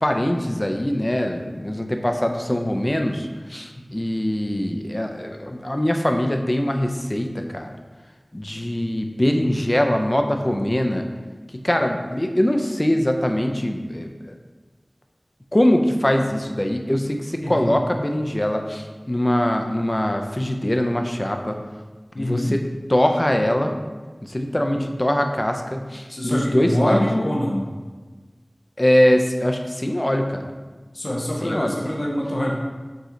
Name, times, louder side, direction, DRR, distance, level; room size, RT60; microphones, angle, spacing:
voice 1, 0.0-7.7 8.3-11.1 11.5-14.4 15.5-21.6 22.2-23.7 24.2-27.0 28.8-30.5 31.4-31.8, left 1 dB, 30° left, 4 dB, 0.5 m, -22 dB
voice 2, 22.1-22.5 24.7-24.8 26.1-27.6 30.9-32.5, equal, 75° left, -3 dB, 0.7 m, -24 dB
4.9 x 2.8 x 3.8 m, 1.3 s
wide cardioid pair, 45°, 0 cm